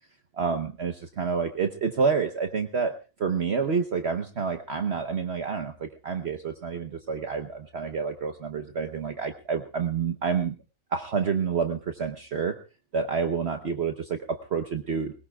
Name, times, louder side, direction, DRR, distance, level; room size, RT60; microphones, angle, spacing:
voice 1, 0.3-2.9 3.2-10.5 10.9-12.6 12.9-15.1, right 5 dB, 50° right, 7 dB, 1.1 m, -28 dB
22.0 x 20.0 x 2.3 m, 0.33 s
omnidirectional pair, 1.5 m